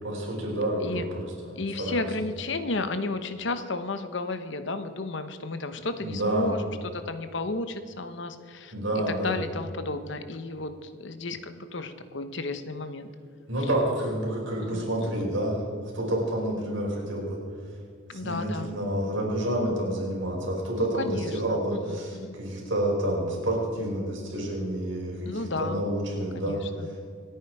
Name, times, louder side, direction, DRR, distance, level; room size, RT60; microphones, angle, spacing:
voice 1, 0.0-2.0 6.0-6.5 8.7-9.4 13.5-15.6 15.9-17.4 18.1-27.0, right 1 dB, 65° right, -2 dB, 5.0 m, -29 dB
voice 2, 1.6-8.7 9.1-13.1 14.6-15.2 18.1-18.7 21.0-21.6 21.9-22.3 25.2-25.8 26.3-26.9, left 2 dB, 65° left, 10 dB, 1.0 m, -33 dB
27.0 x 9.3 x 4.8 m, 2.3 s
head